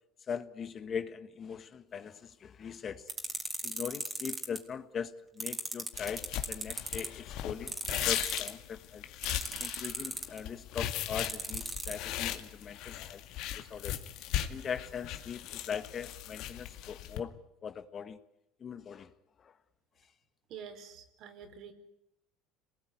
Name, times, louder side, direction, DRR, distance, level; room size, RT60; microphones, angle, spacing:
voice 1, 0.3-3.1 3.6-9.0 9.6-13.2 13.5-14.0 14.5-17.4 17.6-18.2 18.6-19.1 19.4-19.5, left 7 dB, 40° left, 11 dB, 1.6 m, -40 dB
sound 1, 3.1-4.6 5.4-7.1 7.7-8.5 9.2-10.4 11.2-12.0, right 3 dB, 15° right, 3.8 m, -36 dB
sound 2, 5.9-17.2, left 12 dB, 65° left, 2.2 m, -38 dB
voice 2, 20.5-21.7, right 7 dB, 60° right, 7 dB, 4.6 m, -47 dB
27.0 x 19.0 x 9.5 m, 0.87 s
supercardioid pair, 100°, 0 cm